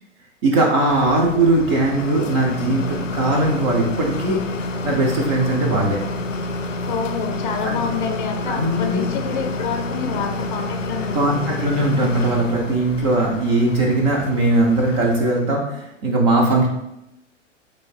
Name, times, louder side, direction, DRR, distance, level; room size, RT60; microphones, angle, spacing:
voice 1, 0.4-4.4 4.8-6.0 7.6-7.8 8.4-9.1 11.1-16.7, right 2 dB, 20° right, -1 dB, 0.4 m, -19 dB
sound 1, 0.9-15.6, left 2 dB, 85° left, 0.6 m, -29 dB
voice 2, 6.9-11.3, left 6 dB, 40° left, 5 dB, 0.6 m, -27 dB
3.2 x 3.1 x 4.3 m, 0.86 s
figure-of-eight pair, 105°, 37 cm